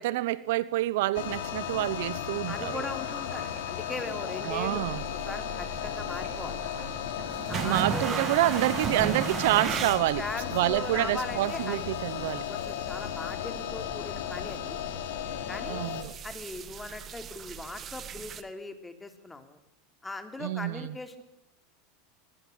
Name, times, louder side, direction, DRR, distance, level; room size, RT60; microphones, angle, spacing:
voice 1, 0.0-2.8 4.5-5.0 7.6-10.2 10.5-12.4 15.7-16.1 20.4-20.9, right 16 dB, 75° right, 1.0 m, -27 dB
sound 1, 1.1-16.0, left 10 dB, 75° left, 4.7 m, -35 dB
voice 2, 2.5-4.8 5.1-6.6 7.5-8.2 10.2-11.9 12.5-14.8 15.5-15.8 16.2-19.6 20.0-21.2, left 2 dB, 10° left, 3.5 m, -39 dB
sound 2, 3.0-8.8, right 5 dB, 50° right, 5.6 m, -49 dB
sound 3, 4.6-18.4, right 7 dB, 35° right, 1.9 m, -38 dB
22.5 x 20.0 x 8.3 m
supercardioid pair, 115°, 0 cm